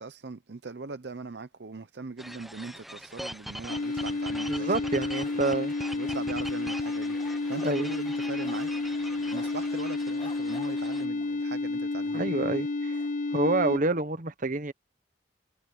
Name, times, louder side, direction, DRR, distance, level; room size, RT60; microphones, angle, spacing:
voice 1, 0.0-5.6 6.0-12.4, right 3 dB, 65° right, 0.7 m, -41 dB
sound 1, 2.2-11.1, equal, ahead, 0.8 m, -42 dB
sound 2, 3.7-13.8, left 3 dB, 45° left, 0.5 m, -31 dB
voice 2, 4.5-5.7 7.6-7.9 12.1-13.0 13.3-14.7, right 3 dB, 45° right, 1.1 m, -28 dB
sound 3, 5.2-11.6 12.0-12.3 12.5-12.6 12.9-13.1, left 3 dB, 30° left, 2.2 m, -51 dB
head